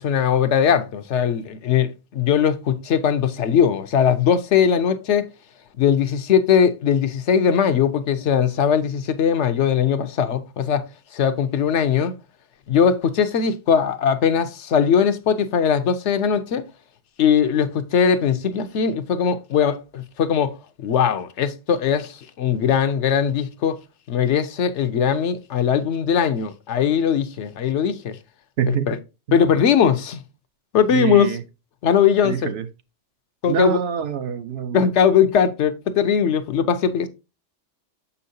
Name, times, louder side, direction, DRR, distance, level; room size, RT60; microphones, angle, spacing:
voice 1, 0.0-5.3 5.8-10.9 11.1-12.1 12.7-16.7 17.2-23.8 24.1-28.2 28.7-29.0 29.3-30.2 30.7-31.4 31.8-32.5 33.4-33.8 34.7-37.1, left 7 dB, 75° left, 1.0 m, -20 dB
voice 2, 28.6-28.9 29.3-29.4 30.9-31.4 32.2-32.7 33.5-34.9, right 8 dB, 65° right, 0.9 m, -25 dB
7.1 x 5.6 x 2.6 m
omnidirectional pair, 1.2 m